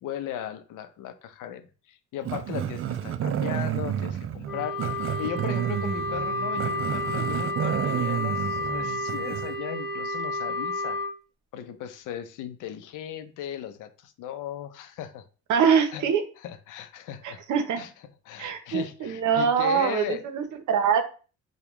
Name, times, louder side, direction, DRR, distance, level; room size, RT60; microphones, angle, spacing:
voice 1, 0.0-4.8 5.2-11.0 11.5-15.2 15.9-16.0 16.4-17.4 17.8-17.9 18.3-20.2, left 10 dB, 90° left, 10 dB, 0.6 m, -37 dB
Growling, 2.2-9.6, right 10 dB, 45° right, 0.4 m, -30 dB
Wind instrument woodwind instrument, 4.5-11.1, left 1 dB, ahead, 0.9 m, -31 dB
voice 2, 15.5-16.2 17.2-17.9 18.4-21.0, right 7 dB, 75° right, 8 dB, 0.8 m, -24 dB
5.0 x 2.3 x 3.0 m, 0.37 s
cardioid pair, 90°, 30 cm